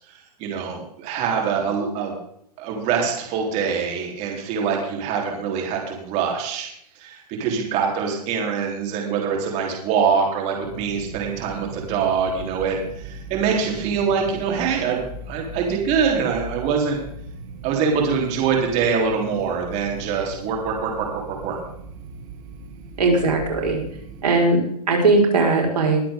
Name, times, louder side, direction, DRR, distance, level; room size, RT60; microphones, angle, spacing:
voice 1, 0.4-2.1 2.6-6.7 7.0-15.0 15.3-17.0 17.6-21.6, right 6 dB, 35° right, 0 dB, 3.8 m, -24 dB
sound 1, 10.6-24.2, right 3 dB, 50° right, 2.5 m, -38 dB
voice 2, 23.0-23.8 24.2-24.6 24.9-26.0, right 3 dB, 80° right, 0 dB, 5.1 m, -18 dB
21.5 x 8.4 x 3.8 m, 0.73 s
hypercardioid pair, 140°, 20 cm